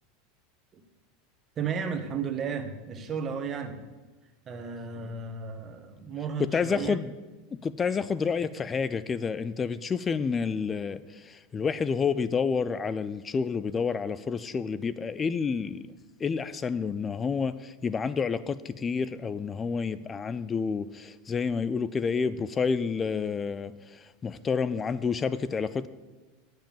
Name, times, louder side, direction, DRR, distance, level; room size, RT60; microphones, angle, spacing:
voice 1, 1.6-3.8 4.5-7.0, right 6 dB, 30° right, 1.3 m, -34 dB
voice 2, 6.5-7.1 7.5-15.9 16.2-25.9, left 5 dB, 25° left, 0.4 m, -29 dB
8.9 x 8.0 x 7.1 m
supercardioid pair, 115°, 0 cm